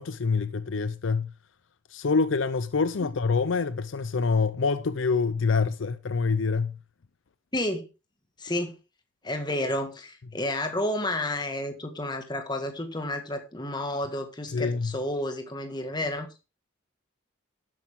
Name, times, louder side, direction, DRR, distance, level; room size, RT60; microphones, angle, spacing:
voice 1, 0.0-1.3 1.9-6.8 14.5-14.9, left 4 dB, 65° left, 0.5 m, -26 dB
voice 2, 7.5-7.9 8.4-8.7 9.2-16.3, left 1 dB, 20° left, 1.7 m, -31 dB
12.0 x 8.7 x 3.6 m
head